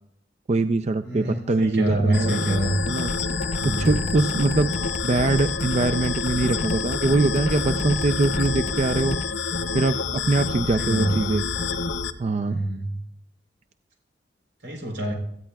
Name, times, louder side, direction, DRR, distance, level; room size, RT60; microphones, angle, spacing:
voice 1, 0.5-2.5 2.9-3.1 3.6-4.7 5.0-9.2 9.7-11.4 12.2-12.6, right 3 dB, 40° right, 10 dB, 0.4 m, -23 dB
voice 2, 1.0-2.8 3.6-4.1 10.6-11.3 12.4-13.0 14.6-15.1, right 1 dB, 90° right, 1 dB, 3.8 m, -26 dB
sound 1, 2.1-12.1, left 4 dB, 75° left, 0.7 m, -28 dB
sound 2, 2.8-9.3, left 1 dB, 35° left, 0.7 m, -33 dB
17.5 x 14.0 x 2.3 m, 0.76 s
head